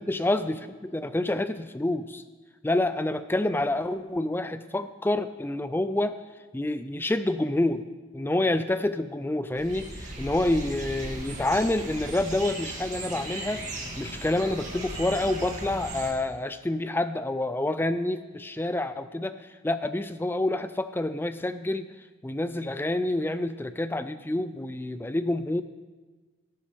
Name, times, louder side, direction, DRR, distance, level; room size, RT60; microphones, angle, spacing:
voice 1, 0.0-2.2 2.6-6.2 6.5-7.8 8.1-21.9 22.2-25.6, left 1 dB, 10° left, 12 dB, 0.3 m, -28 dB
sound 1, 9.6-16.1, right 2 dB, 35° right, 2.5 m, -37 dB
16.5 x 13.5 x 3.5 m, 1.3 s
head